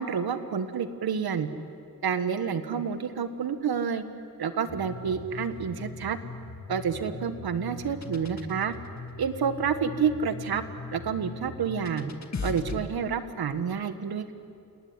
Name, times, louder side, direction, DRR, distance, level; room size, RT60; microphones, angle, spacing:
voice 1, 0.0-1.5 2.0-4.0 4.4-6.2 6.7-8.7 9.2-10.6 10.9-12.1 12.4-14.3, right 6 dB, 80° right, 10 dB, 1.6 m, -29 dB
sound 1, 4.7-12.8, left 4 dB, 50° left, 2.1 m, -40 dB
29.0 x 19.0 x 9.8 m, 2.4 s
cardioid pair, 80°, 36 cm